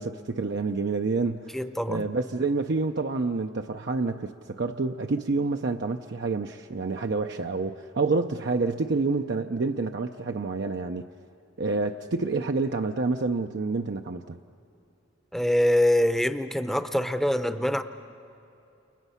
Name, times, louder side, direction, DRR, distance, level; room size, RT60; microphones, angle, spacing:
voice 1, 0.0-1.6 1.9-11.1 11.6-14.4, right 3 dB, 60° right, 4 dB, 0.6 m, -28 dB
voice 2, 1.5-2.0 15.3-17.8, left 1 dB, ahead, 9 dB, 0.7 m, -24 dB
29.5 x 29.5 x 5.7 m, 2.7 s
head